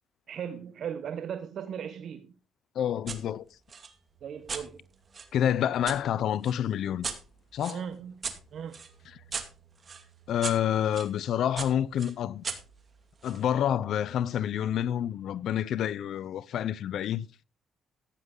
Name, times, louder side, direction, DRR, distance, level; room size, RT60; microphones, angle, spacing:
voice 1, 0.3-2.3 4.2-4.8 7.7-8.3 8.5-8.8, right 8 dB, 65° right, 1.0 m, -37 dB
voice 2, 2.8-3.5 5.3-7.1 7.5-7.8 10.3-12.4 13.2-17.3, left 10 dB, 75° left, 0.6 m, -28 dB
sound 1, 3.1-3.2 3.7-6.0 6.4-11.1 11.6-13.4, right 5 dB, 40° right, 2.3 m, -39 dB
14.5 x 9.9 x 3.8 m
cardioid pair, 90°, 0 cm